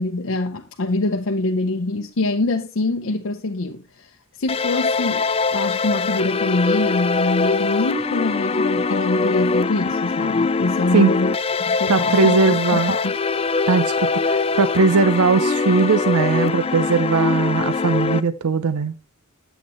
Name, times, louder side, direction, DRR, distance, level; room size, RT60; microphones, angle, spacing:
voice 1, 0.0-4.1 4.4-5.3 5.5-13.1, left 2 dB, 60° left, 0.7 m, -24 dB
sound 1, 4.5-18.2, left 4 dB, 25° left, 0.3 m, -22 dB
voice 2, 11.9-13.0 13.7-18.9, right 4 dB, 90° right, 0.6 m, -19 dB
8.6 x 8.0 x 3.0 m
head